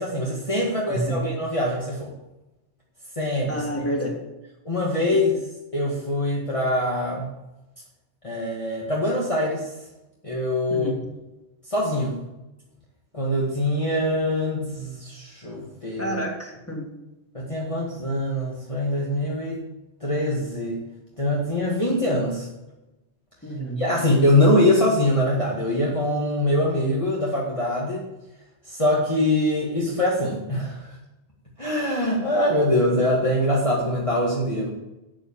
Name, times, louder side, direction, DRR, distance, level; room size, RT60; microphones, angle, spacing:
voice 1, 0.0-2.1 3.2-3.7 4.7-5.3 5.7-7.3 8.2-9.7 10.2-10.9 11.7-12.1 13.1-16.2 17.3-19.6 20.0-20.8 21.2-22.5 23.8-28.1 28.7-30.9 31.6-34.7, left 1 dB, 30° left, -4 dB, 2.2 m, -23 dB
voice 2, 0.9-1.2 3.5-4.2 10.7-11.0 16.0-16.9 23.4-23.8, right 1 dB, 10° left, -1 dB, 2.9 m, -28 dB
13.0 x 7.9 x 7.4 m, 0.99 s
omnidirectional pair, 1.2 m